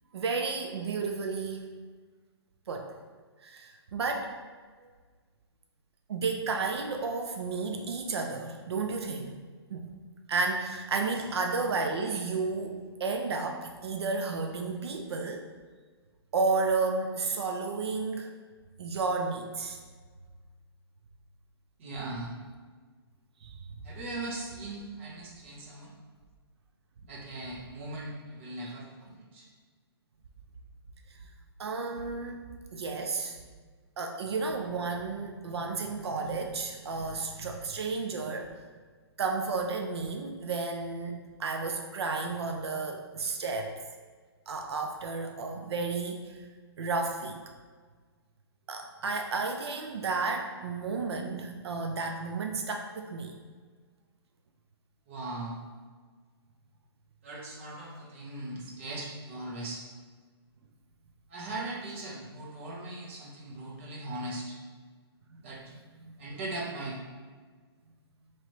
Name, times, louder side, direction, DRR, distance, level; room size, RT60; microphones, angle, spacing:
voice 1, 0.1-1.7 2.7-2.9 3.4-4.3 6.1-9.4 9.7-9.9 10.3-15.4 16.3-18.3 18.8-19.8 23.4-23.6 28.6-28.8 31.6-32.4 32.7-33.4 34.0-38.6 39.2-43.7 44.5-46.4 46.8-47.4 48.7-53.4 65.3-65.4 66.0-66.1, right 4 dB, 75° right, 3 dB, 0.5 m, -32 dB
voice 2, 21.8-22.3 23.8-25.9 27.1-29.5 55.1-55.6 57.2-59.8 61.3-64.6 65.4-65.7 66.2-67.0, right 2 dB, 30° right, -3 dB, 0.7 m, -39 dB
3.0 x 2.9 x 4.4 m, 1.5 s
hypercardioid pair, 175°, 14 cm